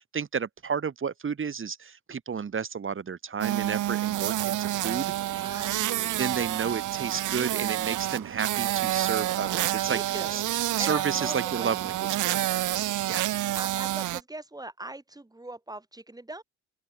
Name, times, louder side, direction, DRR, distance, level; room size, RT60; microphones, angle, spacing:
voice 1, 0.0-5.5 6.2-10.0 10.3-10.4 10.8-12.0 12.2-12.4 13.1-13.3, right 6 dB, 40° right, 4.9 m, -31 dB
sound 1, 3.4-14.2, right 14 dB, 80° right, 3.2 m, -28 dB
voice 2, 4.9-6.3 9.9-10.5 10.8-12.6 13.5-16.4, right 2 dB, 10° right, 7.0 m, -41 dB
open air
cardioid pair, 90°, 30 cm